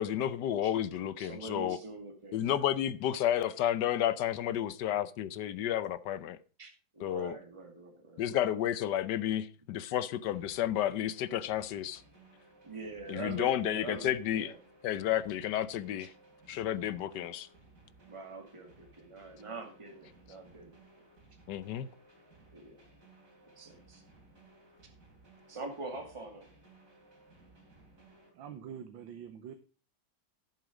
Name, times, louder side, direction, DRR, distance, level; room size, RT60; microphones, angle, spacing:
voice 1, 0.0-1.8 2.3-6.4 7.0-7.4 8.2-12.0 13.1-14.5 14.8-16.1 16.5-17.5 21.5-21.9, left 11 dB, 70° left, 1.2 m, -31 dB
voice 2, 1.2-2.6 6.6-8.4 12.6-14.6 16.0-16.1 18.1-20.7 22.5-22.8 23.6-24.0 25.5-26.5, right 3 dB, 15° right, 2.1 m, -44 dB
sound 1, 10.3-28.3, right 2 dB, 45° right, 3.6 m, -60 dB
voice 3, 28.3-29.5, right 8 dB, 85° right, 1.7 m, -45 dB
11.0 x 7.5 x 5.0 m
omnidirectional pair, 2.0 m